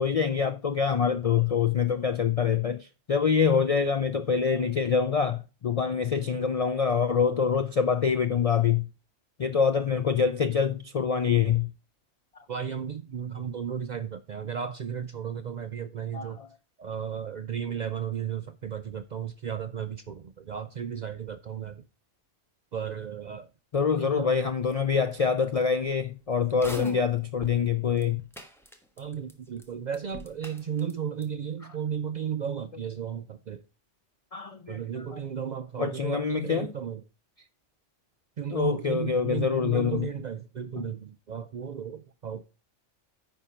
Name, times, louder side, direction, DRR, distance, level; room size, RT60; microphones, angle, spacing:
voice 1, 0.0-8.9 9.4-11.7 16.1-16.5 23.7-28.2 34.3-35.2 35.8-36.7 38.5-40.1 40.8-40.9, left 6 dB, 60° left, 0.4 m, -25 dB
voice 2, 12.5-16.4 16.8-21.9 22.7-23.5 24.0-24.3 29.0-33.6 34.7-37.0 38.4-42.4, right 8 dB, 60° right, 0.4 m, -34 dB
sound 1, 26.5-27.6 28.0-28.1 28.3-29.3 29.6-29.7 29.9-30.9 31.2-31.3, right 1 dB, ahead, 1.1 m, -42 dB
10.0 x 4.4 x 4.9 m
omnidirectional pair, 1.2 m